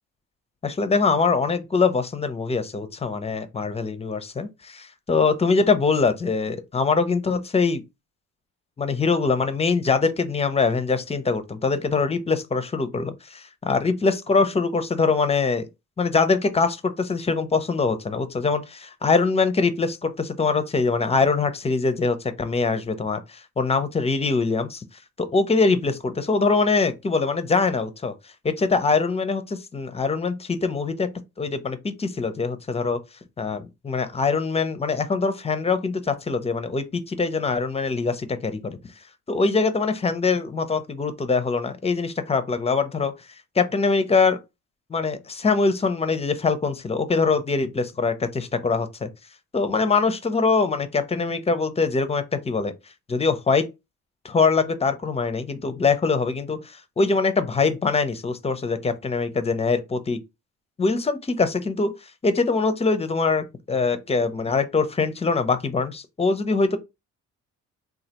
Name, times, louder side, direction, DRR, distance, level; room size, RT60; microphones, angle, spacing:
voice 1, 0.6-7.8 8.8-15.7 16.0-24.8 25.2-28.1 28.4-31.1 31.4-33.0 33.4-38.8 39.3-43.1 43.6-44.4 44.9-49.1 49.5-52.7 53.1-53.7 54.2-60.2 60.8-61.9 62.2-66.8, left 4 dB, 20° left, 0.5 m, -23 dB
3.2 x 2.3 x 2.8 m
cardioid pair, 90°, 30 cm